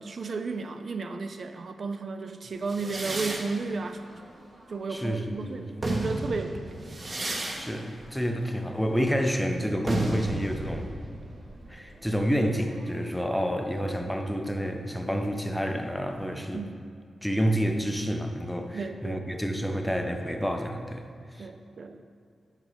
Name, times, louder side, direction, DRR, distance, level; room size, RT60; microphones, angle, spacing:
voice 1, 0.0-4.0 4.7-6.7 16.5-16.7 18.7-19.2 21.4-22.0, right 4 dB, 50° right, 7 dB, 0.3 m, -33 dB
sound 1, 2.7-5.2 5.6-13.1, right 1 dB, 35° right, 0.9 m, -35 dB
voice 2, 4.9-5.8 7.5-10.9 11.7-16.7 17.2-21.5, equal, 5° left, 5 dB, 0.5 m, -29 dB
7.2 x 5.1 x 4.0 m, 2.3 s
wide cardioid pair, 120°, 0 cm